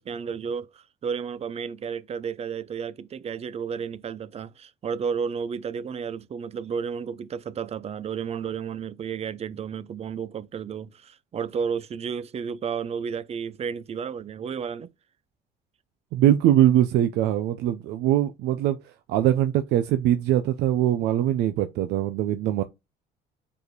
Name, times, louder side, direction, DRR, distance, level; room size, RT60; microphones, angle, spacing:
voice 1, 0.0-14.9, right 6 dB, 40° right, 0.6 m, -32 dB
voice 2, 16.1-18.8 19.1-22.6, right 12 dB, 85° right, 0.6 m, -22 dB
7.2 x 4.9 x 3.2 m
cardioid pair, 110°, 17 cm